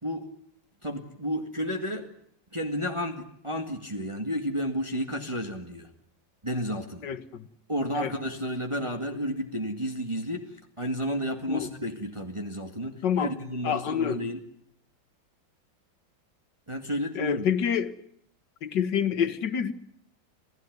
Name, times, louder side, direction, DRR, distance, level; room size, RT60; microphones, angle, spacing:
voice 1, 0.8-2.1 2.5-5.9 6.4-7.1 7.7-14.4 16.7-17.4, equal, 15° right, 2.0 m, -32 dB
voice 2, 7.0-7.5 7.9-8.1 11.5-11.7 13.0-13.3 13.6-14.2 17.2-17.9 18.6-19.7, left 8 dB, 70° left, 2.0 m, -27 dB
28.0 x 16.0 x 9.4 m
omnidirectional pair, 2.0 m